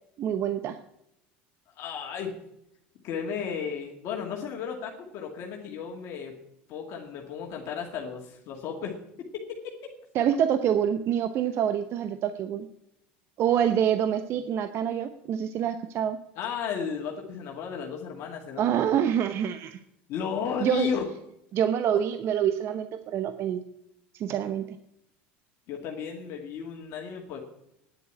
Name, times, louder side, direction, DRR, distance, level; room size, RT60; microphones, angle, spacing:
voice 1, 0.2-0.8 10.1-12.7 13.4-16.2 18.6-19.8 20.6-20.9 21.5-23.6 24.1-24.7, right 9 dB, 50° right, 9 dB, 0.8 m, -26 dB
voice 2, 1.8-2.3 3.0-6.3 6.7-8.9 9.3-9.7 16.4-18.7 20.1-21.1 25.7-27.4, left 7 dB, 55° left, 1 dB, 2.2 m, -34 dB
10.0 x 8.1 x 9.6 m, 0.80 s
supercardioid pair, 95°, 5 cm